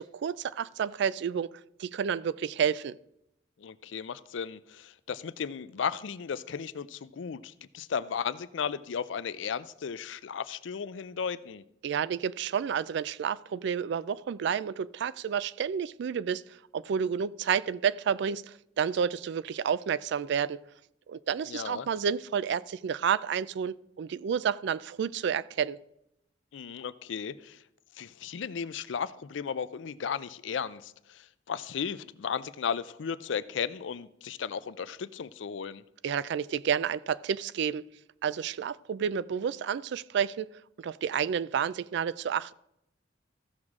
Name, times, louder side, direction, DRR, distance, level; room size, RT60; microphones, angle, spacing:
voice 1, 0.0-1.5 1.8-3.0 11.8-16.4 16.7-20.6 21.1-25.8 36.0-37.8 38.2-40.5 40.8-42.5, right 7 dB, 65° right, 19 dB, 0.3 m, -30 dB
voice 2, 3.6-11.6 21.5-21.9 26.5-27.6 28.0-35.8, left 7 dB, 80° left, 16 dB, 0.4 m, -35 dB
15.0 x 6.3 x 3.6 m, 0.82 s
head